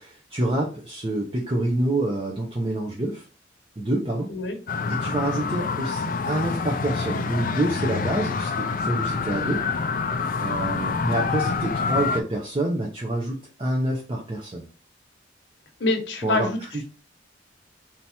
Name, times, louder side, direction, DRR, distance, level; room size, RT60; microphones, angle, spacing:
voice 1, 0.0-3.2 3.8-4.3 4.9-9.6 10.4-14.6 16.2-16.5 16.7-16.8, right 1 dB, 30° right, -2 dB, 0.7 m, -27 dB
sound 1, 4.7-12.2, left 4 dB, 50° left, 0.4 m, -27 dB
voice 2, 15.8-16.6, left 2 dB, 80° left, 4 dB, 0.9 m, -25 dB
3.4 x 2.9 x 4.2 m, 0.36 s
head